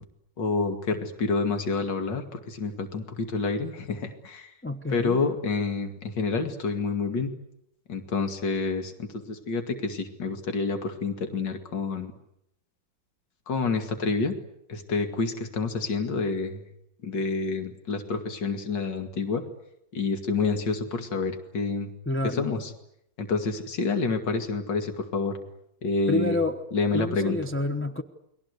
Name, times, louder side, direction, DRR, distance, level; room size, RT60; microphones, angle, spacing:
voice 1, 0.4-4.5 4.9-7.3 7.9-12.1 13.5-14.4 14.7-16.6 17.0-19.4 19.9-21.9 22.2-22.7 23.2-25.4 25.8-26.4 26.7-27.4, left 4 dB, 60° left, 6 dB, 2.9 m, -28 dB
voice 2, 4.6-5.2 22.1-22.5 26.1-26.6 26.9-28.0, left 2 dB, 10° left, 3 dB, 0.8 m, -29 dB
29.5 x 22.0 x 8.2 m, 0.78 s
omnidirectional pair, 2.1 m